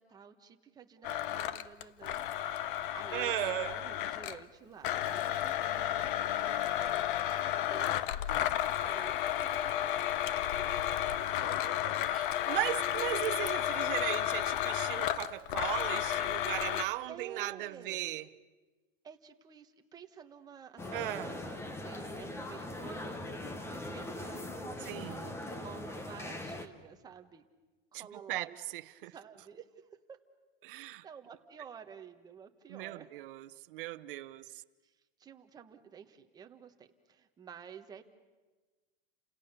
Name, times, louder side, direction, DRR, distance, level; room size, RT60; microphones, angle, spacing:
voice 1, 0.0-12.0 17.1-18.1 19.0-27.4 27.9-28.6 29.0-29.7 30.1-30.2 30.7-33.1 34.5-34.9 35.2-38.0, right 7 dB, 15° right, 1.2 m, -51 dB
Domestic sounds home sounds, 1.0-4.4 4.8-16.8, left 12 dB, 60° left, 0.9 m, -32 dB
voice 2, 3.1-3.9 12.5-18.2 20.9-21.3 24.9-25.3 27.9-28.0 28.3-28.5 29.0-29.1 30.6-31.0 32.7-34.5, right 16 dB, 60° right, 1.0 m, -37 dB
sound 1, 20.8-26.7, left 1 dB, 10° left, 1.1 m, -41 dB
30.0 x 27.5 x 6.8 m
supercardioid pair, 170°, 30 cm